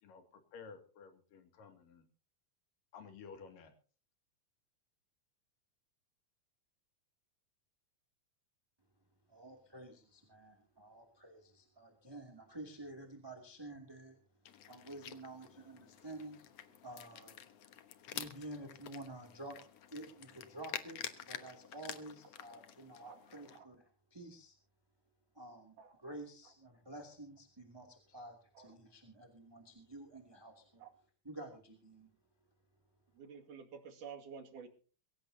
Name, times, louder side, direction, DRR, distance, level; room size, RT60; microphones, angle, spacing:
voice 1, 0.0-2.1 2.9-3.7, left 5 dB, 85° left, 7 dB, 4.0 m, -53 dB
voice 2, 9.3-14.2 14.7-19.6 19.9-21.0 21.3-23.8 24.1-24.6 25.3-30.8 31.2-32.1, right 1 dB, 10° right, 3 dB, 2.1 m, -50 dB
sound 1, 14.4-23.6, left 10 dB, 60° left, 2.0 m, -49 dB
voice 3, 33.1-34.7, right 6 dB, 70° right, 4 dB, 3.7 m, -51 dB
22.5 x 17.0 x 2.8 m, 0.39 s
omnidirectional pair, 3.8 m